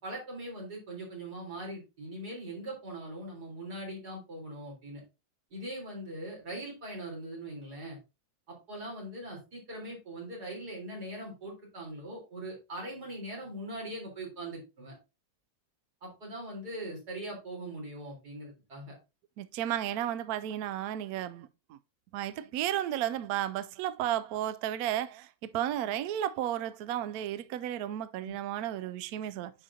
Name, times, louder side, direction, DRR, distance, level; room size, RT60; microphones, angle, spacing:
voice 1, 0.0-5.0 5.5-8.0 8.5-14.9 16.0-19.0 28.2-28.3, right 1 dB, 55° right, 4.4 m, -41 dB
voice 2, 19.4-21.8 22.1-29.5, right 12 dB, 80° right, 0.8 m, -33 dB
10.0 x 5.0 x 2.8 m
omnidirectional pair, 2.1 m